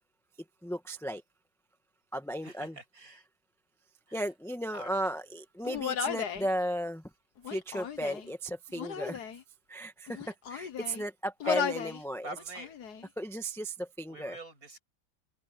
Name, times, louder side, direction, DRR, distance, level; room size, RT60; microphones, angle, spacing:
voice 1, 0.6-1.2 2.1-2.8 4.1-7.0 7.5-9.2 9.7-12.3 13.2-14.4, right 1 dB, ahead, 1.5 m, -35 dB
voice 2, 2.4-3.3 4.1-4.3 4.7-5.0 10.1-10.2 11.4-11.6 12.2-12.7 14.1-14.8, right 1 dB, 45° right, 7.7 m, -46 dB
Human voice, 5.6-6.5 7.4-8.3 8.7-9.4 10.1-11.0 11.4-12.0 12.4-13.0, left 7 dB, 55° left, 1.7 m, -35 dB
open air
omnidirectional pair, 2.2 m